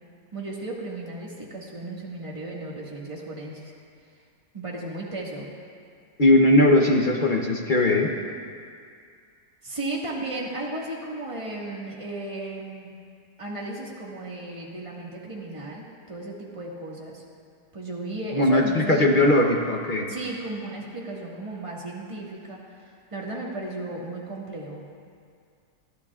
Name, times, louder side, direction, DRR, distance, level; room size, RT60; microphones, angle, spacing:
voice 1, 0.3-3.7 4.5-5.5 9.6-12.9 13.4-17.2 17.7-19.2 20.1-24.9, right 2 dB, 20° right, -4 dB, 1.7 m, -35 dB
voice 2, 6.2-8.1 18.3-20.1, left 1 dB, 40° left, 1 dB, 0.7 m, -19 dB
21.0 x 13.5 x 2.4 m, 2.2 s
omnidirectional pair, 1.8 m